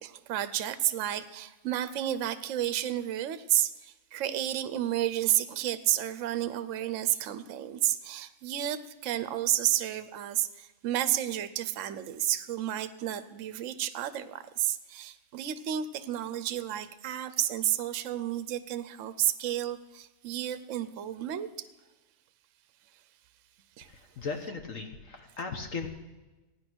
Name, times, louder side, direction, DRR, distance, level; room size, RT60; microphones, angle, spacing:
voice 1, 0.0-21.5 23.8-23.9, right 12 dB, 60° right, 13 dB, 1.0 m, -31 dB
voice 2, 23.8-25.9, left 4 dB, 55° left, 4 dB, 1.5 m, -37 dB
15.5 x 9.9 x 6.2 m, 1.1 s
omnidirectional pair, 1.7 m